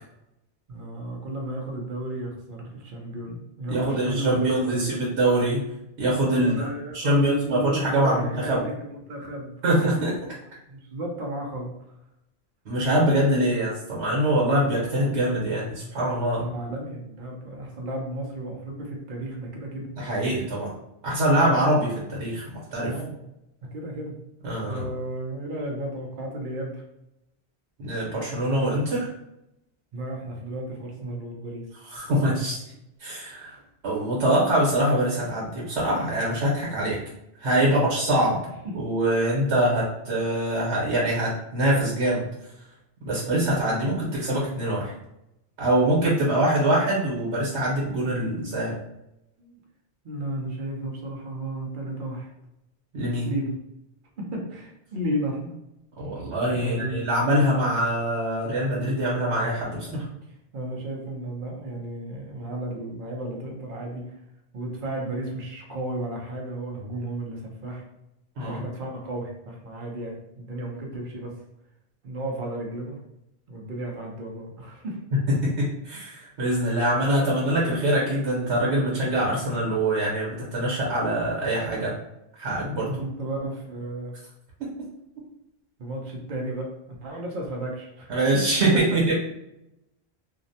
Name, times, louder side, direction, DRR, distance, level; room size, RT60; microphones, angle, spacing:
voice 1, 0.7-4.8 6.3-10.2 10.7-11.7 16.3-19.9 21.4-21.6 22.8-23.2 23.7-24.1 24.5-26.8 29.9-31.6 37.6-38.1 38.6-38.7 49.4-49.6 50.0-52.3 53.2-53.5 54.2-55.6 56.5-57.0 59.6-60.0 60.5-64.0 64.5-67.8 68.4-71.3 72.0-73.0 73.5-75.0 82.9-84.1 85.8-86.7 87.0-88.3, right 1 dB, 55° right, -1 dB, 0.7 m, -33 dB
voice 2, 3.7-5.6 6.0-6.7 6.9-8.6 9.6-10.1 12.6-16.4 20.0-20.7 21.0-22.9 24.4-24.9 27.8-29.1 31.9-32.6 33.0-33.6 33.8-37.0 37.4-38.4 38.7-42.2 43.0-44.9 45.6-48.7 52.9-53.3 56.0-59.9 68.4-68.6 75.1-81.9 82.4-83.0 84.6-84.7 88.1-89.1, right 1 dB, 90° right, -5 dB, 1.1 m, -24 dB
2.5 x 2.0 x 2.6 m, 0.87 s
omnidirectional pair, 1.1 m